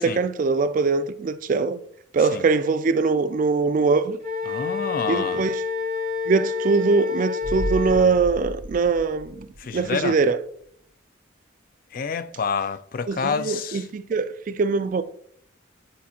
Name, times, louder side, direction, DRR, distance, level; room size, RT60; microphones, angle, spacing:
voice 1, 0.0-1.8 2.1-4.2 5.1-5.6 6.3-9.5 9.7-10.4 13.1-15.0, right 4 dB, 40° right, 0.3 m, -22 dB
Wind instrument woodwind instrument, 4.2-8.1, left 5 dB, 60° left, 1.7 m, -28 dB
voice 2, 4.5-5.5 9.6-10.2 11.9-13.9, left 6 dB, 45° left, 0.3 m, -28 dB
sound 1, 7.4-10.1 10.4-10.5, right 1 dB, 80° right, 0.8 m, -33 dB
9.5 x 4.2 x 2.8 m
head